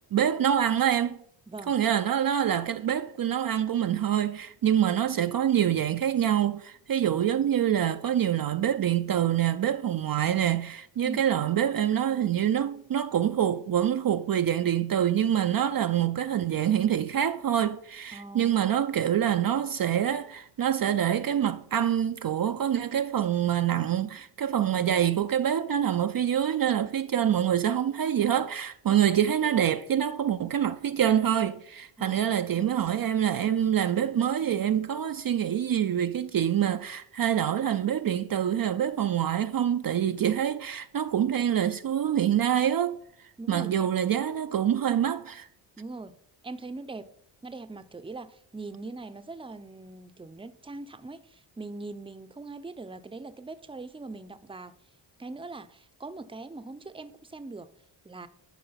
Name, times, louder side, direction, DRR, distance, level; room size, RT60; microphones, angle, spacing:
voice 1, 0.1-1.2 1.7-43.0 43.5-45.5, right 10 dB, 45° right, 0.6 m, -26 dB
voice 2, 18.1-18.8 27.1-27.4 29.0-29.1 32.0-32.7 43.4-43.9 45.8-46.2 46.4-47.1 47.4-54.7 55.2-57.7 58.0-58.3, right 3 dB, 10° right, 0.7 m, -41 dB
11.5 x 4.9 x 5.7 m
cardioid pair, 65°, 48 cm